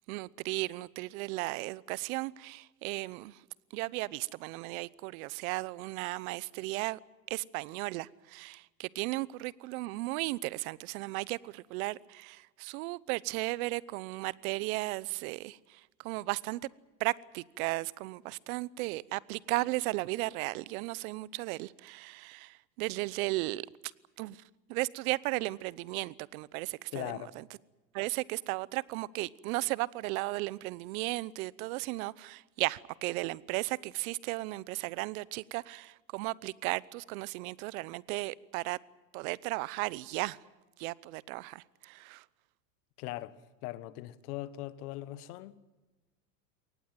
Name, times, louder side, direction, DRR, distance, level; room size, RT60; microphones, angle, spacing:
voice 1, 0.1-3.4 3.7-7.0 7.3-16.6 17.0-23.7 24.2-24.4 24.7-27.4 27.9-38.8 39.1-40.4 40.8-42.2, right 21 dB, 55° right, 1.0 m, -35 dB
voice 2, 26.9-27.3 43.0-43.4 43.6-45.7, left 16 dB, 60° left, 1.6 m, -40 dB
23.0 x 19.0 x 9.3 m
supercardioid pair, 120°, 50 cm